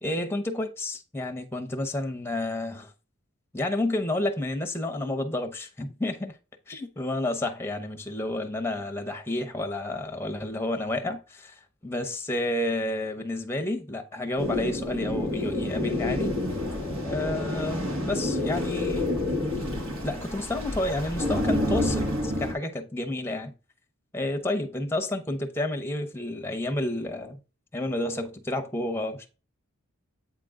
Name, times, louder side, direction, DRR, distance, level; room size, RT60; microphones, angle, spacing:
voice 1, 0.0-2.9 3.5-6.4 6.7-16.4 17.0-19.2 20.0-23.5 24.1-27.4 27.7-29.3, left 1 dB, 10° left, 0.7 m, -30 dB
sound 1, 14.4-22.5, left 1 dB, 75° right, 2.7 m, -29 dB
8.4 x 3.7 x 3.7 m
head